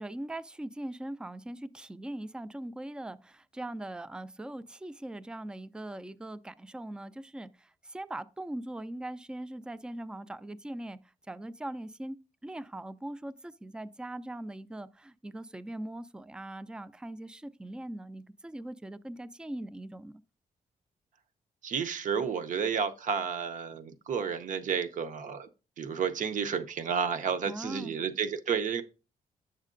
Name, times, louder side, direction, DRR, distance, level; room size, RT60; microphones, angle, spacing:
voice 1, 0.0-11.0 11.3-12.2 12.4-20.2 27.5-27.9, right 1 dB, 5° right, 0.3 m, -41 dB
voice 2, 21.6-25.5 25.8-28.8, right 6 dB, 65° right, 0.7 m, -31 dB
8.2 x 6.5 x 2.5 m
cardioid pair, 110°, 14 cm